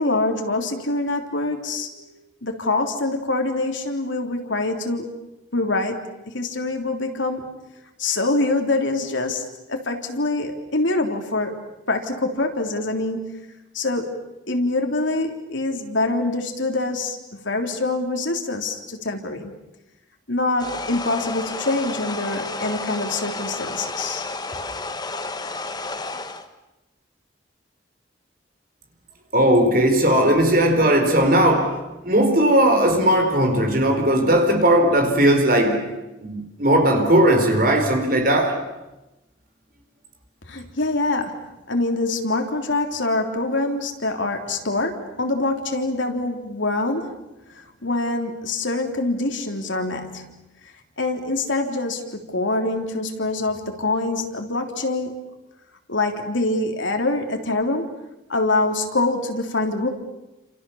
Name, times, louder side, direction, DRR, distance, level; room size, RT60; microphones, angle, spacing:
voice 1, 0.0-2.1 2.4-5.1 5.5-7.6 8.0-11.6 11.9-13.3 13.7-14.2 14.5-19.5 20.3-24.2 40.5-47.2 47.5-50.4 51.0-55.3 55.9-57.9 58.3-59.9, left 2 dB, 80° left, 3.5 m, -25 dB
sound 1, 20.6-26.5, left 3 dB, 20° left, 1.4 m, -31 dB
voice 2, 29.3-38.6, right 1 dB, 45° right, 4.4 m, -18 dB
29.5 x 27.5 x 7.2 m
head